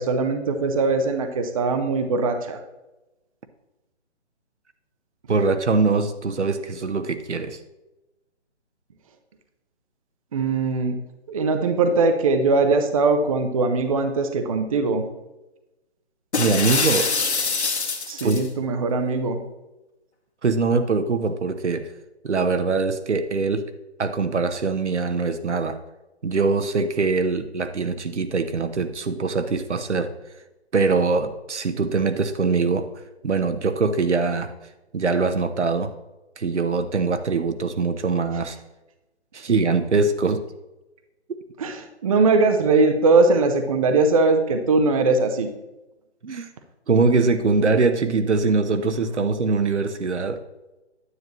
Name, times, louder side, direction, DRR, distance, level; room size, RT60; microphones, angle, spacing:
voice 1, 0.0-2.6 10.3-11.0 11.3-15.0 18.1-19.4 41.6-45.5, right 3 dB, 30° right, 7 dB, 0.6 m, -21 dB
voice 2, 5.3-7.6 16.4-17.1 18.2-18.4 20.4-21.8 22.2-23.6 24.0-25.8 26.2-30.1 30.7-32.9 33.2-34.5 34.9-35.9 36.4-38.6 39.3-40.4 46.2-46.5 46.9-50.4, right 4 dB, 80° right, 9 dB, 0.9 m, -22 dB
sound 1, 16.3-18.5, left 4 dB, 70° left, 1.6 m, -24 dB
9.6 x 8.8 x 3.0 m, 1.0 s
figure-of-eight pair, 145°, 34 cm